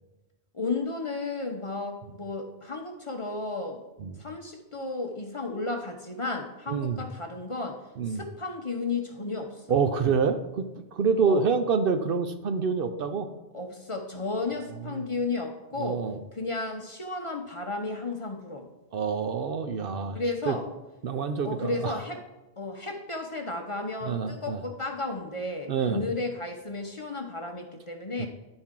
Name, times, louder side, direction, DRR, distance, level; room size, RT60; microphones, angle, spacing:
voice 1, 0.5-3.8 4.2-9.8 11.2-11.5 13.5-18.6 20.1-20.7 21.4-22.2 22.6-28.3, left 3 dB, 35° left, 3 dB, 0.8 m, -33 dB
voice 2, 6.7-7.0 8.0-8.2 9.7-10.7 10.9-13.3 14.9-15.0 15.8-16.2 18.9-20.2 20.5-20.6 21.0-22.0 24.0-24.6 25.7-26.0 28.2-28.3, right 5 dB, 65° right, 8 dB, 0.7 m, -27 dB
11.5 x 4.4 x 3.6 m, 1.0 s
omnidirectional pair, 1.1 m